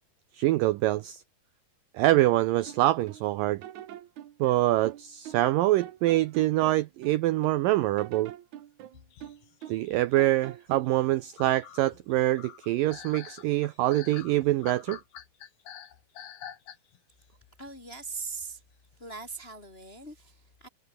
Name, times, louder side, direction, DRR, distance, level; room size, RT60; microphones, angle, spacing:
voice 1, 0.3-1.2 1.9-3.6 4.4-8.3 9.7-15.0, right 16 dB, 80° right, 2.0 m, -25 dB
sound 1, 2.2-3.3 3.6-5.5 5.8-7.6 8.0-9.9 10.2-11.0, right 11 dB, 60° right, 2.2 m, -45 dB
sound 2, 8.9-17.1 17.4-17.8 18.4-18.5 18.9-19.2, left 9 dB, 60° left, 3.6 m, -47 dB
voice 2, 17.6-18.6 19.0-20.7, right 4 dB, 20° left, 1.6 m, -40 dB
omnidirectional pair, 4.7 m